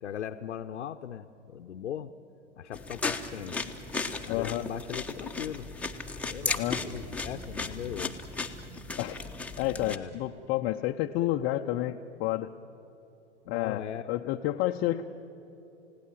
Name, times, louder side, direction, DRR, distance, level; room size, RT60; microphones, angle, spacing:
voice 1, 0.0-2.1 2.6-3.7 4.3-5.7 6.3-8.2 9.8-10.3 13.4-14.1, left 10 dB, 75° left, 5 dB, 0.9 m, -39 dB
sound 1, 2.7-10.0, left 3 dB, 5° left, 1.1 m, -35 dB
voice 2, 4.3-4.6 6.6-6.8 9.0-9.2 9.6-12.5 13.5-15.0, left 14 dB, 30° left, 2 dB, 0.7 m, -30 dB
29.5 x 17.0 x 7.5 m, 3.0 s
hypercardioid pair, 105°, 36 cm